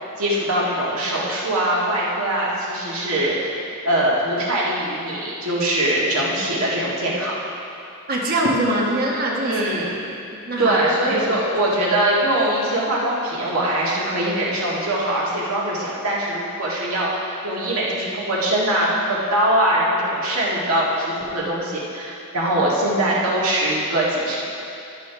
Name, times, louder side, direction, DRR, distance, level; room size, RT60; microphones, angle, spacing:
voice 1, 0.2-3.6 3.8-7.3 9.4-10.1 10.6-24.4, right 1 dB, 70° right, -5 dB, 1.8 m, -22 dB
voice 2, 8.1-9.6 10.5-10.8 11.1-11.4, right 1 dB, 45° right, -2 dB, 1.1 m, -22 dB
11.5 x 6.5 x 3.4 m, 2.7 s
head